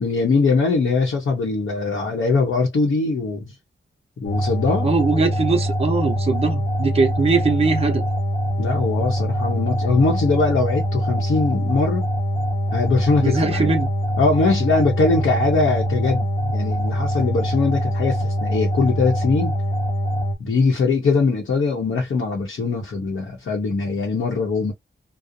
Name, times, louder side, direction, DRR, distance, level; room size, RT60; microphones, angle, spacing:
voice 1, 0.0-3.5 4.2-4.9 8.6-12.1 12.7-13.7 14.2-19.5 20.4-24.7, left 4 dB, 90° left, 0.8 m, -21 dB
sound 1, 4.2-20.3, equal, 30° left, 0.7 m, -23 dB
voice 2, 4.8-8.0 13.2-13.9, right 4 dB, 30° right, 0.5 m, -21 dB
2.4 x 2.0 x 2.6 m
wide cardioid pair, 170°, 20 cm